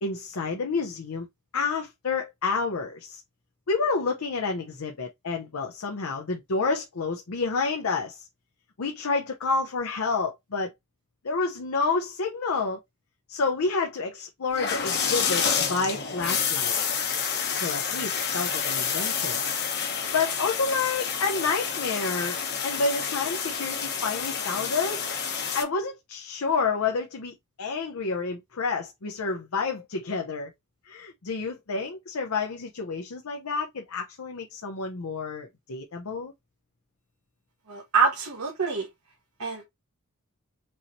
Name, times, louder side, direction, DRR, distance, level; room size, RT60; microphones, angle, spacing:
voice 1, 0.0-1.3 1.5-3.2 3.7-8.3 8.8-10.7 11.2-12.8 13.3-16.8 17.6-19.4 20.1-25.1 25.5-30.5 30.9-36.3, left 4 dB, 80° left, 0.7 m, -29 dB
sound 1, 14.5-25.6, left 6 dB, 55° left, 1.0 m, -29 dB
voice 2, 37.7-38.9 39.4-39.6, right 5 dB, 85° right, 1.1 m, -25 dB
4.7 x 3.0 x 2.6 m
head